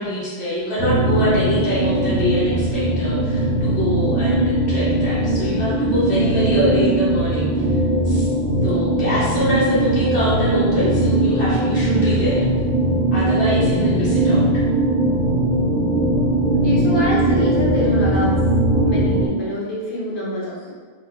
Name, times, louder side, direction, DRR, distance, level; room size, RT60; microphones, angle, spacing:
voice 1, 0.0-7.6 8.0-8.3 8.6-12.4 13.1-14.6, equal, 85° left, -10 dB, 1.2 m, -24 dB
sound 1, 0.8-19.3, right 1 dB, 50° right, 0.8 m, -19 dB
voice 2, 16.6-18.4 18.8-20.8, left 1 dB, 60° left, -6 dB, 1.0 m, -26 dB
2.8 x 2.2 x 3.6 m, 1.4 s
omnidirectional pair, 1.0 m